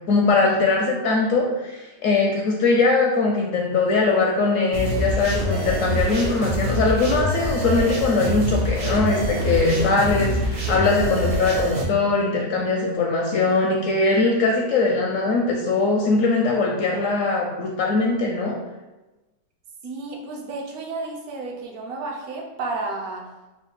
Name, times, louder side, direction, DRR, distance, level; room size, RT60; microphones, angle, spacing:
voice 1, 0.1-18.6, left 3 dB, 70° left, 0 dB, 0.8 m, -21 dB
sound 1, 4.7-11.8, equal, 85° right, 1.5 m, -25 dB
voice 2, 19.8-23.2, right 3 dB, 65° right, 0 dB, 1.2 m, -32 dB
4.1 x 2.3 x 4.7 m, 1.1 s
omnidirectional pair, 1.8 m